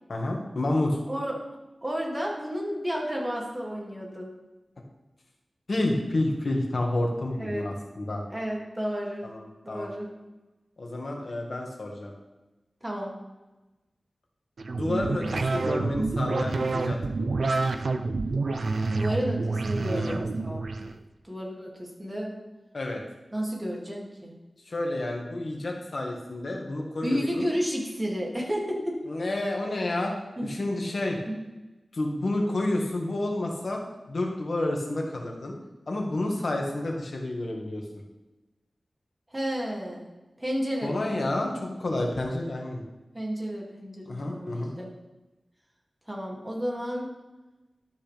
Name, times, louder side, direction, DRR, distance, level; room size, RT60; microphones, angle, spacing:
voice 1, 0.1-1.0 5.7-8.2 9.2-9.9 10.8-12.1 14.7-17.2 19.9-20.2 22.7-23.0 24.7-27.5 29.1-30.1 30.4-31.2 31.9-33.8 34.1-35.5 35.9-37.8 40.8-42.8 44.1-44.7, left 1 dB, 70° left, 1 dB, 1.7 m, -30 dB
voice 2, 1.1-1.4 1.8-4.3 7.4-7.6 8.3-9.3 9.6-10.1 12.8-13.1 18.9-20.6 21.2-22.4 23.3-24.4 27.0-29.0 30.4-30.5 31.3-31.4 39.3-40.1 40.4-41.0 43.1-44.9 46.1-47.1, equal, 20° right, -2 dB, 2.4 m, -31 dB
sound 1, 14.6-20.9, right 3 dB, 80° right, 0.5 m, -28 dB
12.5 x 5.8 x 3.4 m, 1.1 s
wide cardioid pair, 55°, 0 cm